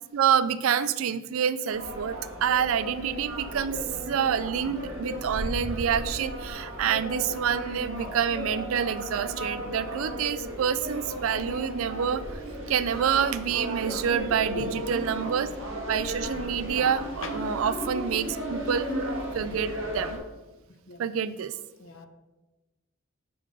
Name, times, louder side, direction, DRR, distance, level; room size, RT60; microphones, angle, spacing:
voice 1, 0.1-12.4 12.7-15.5 15.9-20.2 21.0-21.5, right 8 dB, 80° right, 15 dB, 0.4 m, -27 dB
sound 1, 1.7-20.2, equal, 65° right, 1.6 m, -35 dB
voice 2, 14.5-14.7 17.2-17.3 20.9-21.0 21.8-22.1, left 3 dB, 70° left, 7 dB, 0.8 m, -39 dB
6.2 x 4.4 x 5.3 m, 1.1 s
head